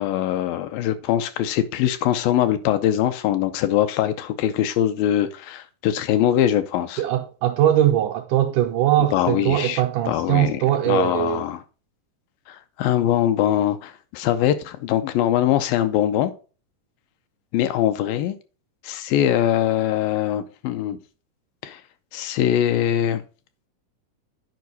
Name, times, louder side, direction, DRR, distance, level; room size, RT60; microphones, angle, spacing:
voice 1, 0.0-7.0 9.1-11.6 12.5-16.3 17.5-18.4 18.8-21.0 21.6-21.8 22.1-23.2, left 11 dB, 80° left, 2.3 m, -22 dB
voice 2, 7.0-11.4, right 12 dB, 80° right, 1.9 m, -21 dB
9.3 x 5.1 x 4.0 m
omnidirectional pair, 4.2 m